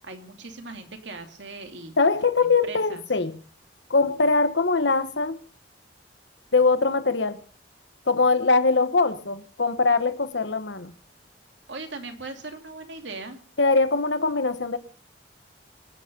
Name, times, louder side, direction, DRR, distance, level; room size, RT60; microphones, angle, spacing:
voice 1, 0.0-2.0 2.4-3.0 11.7-13.4, right 3 dB, 75° right, 2.7 m, -39 dB
voice 2, 2.0-3.4 3.9-5.4 6.5-7.4 8.1-10.9 13.6-14.8, left 3 dB, 75° left, 1.3 m, -22 dB
25.0 x 9.4 x 5.4 m
head